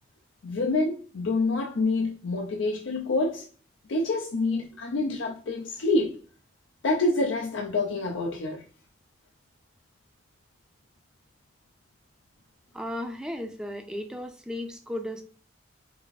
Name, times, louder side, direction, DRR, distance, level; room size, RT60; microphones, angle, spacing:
voice 1, 0.4-3.5 3.9-6.2 6.8-8.6, left 2 dB, 90° left, 0.5 m, -27 dB
voice 2, 12.7-15.2, left 1 dB, 5° right, 0.4 m, -35 dB
4.8 x 2.5 x 2.4 m
head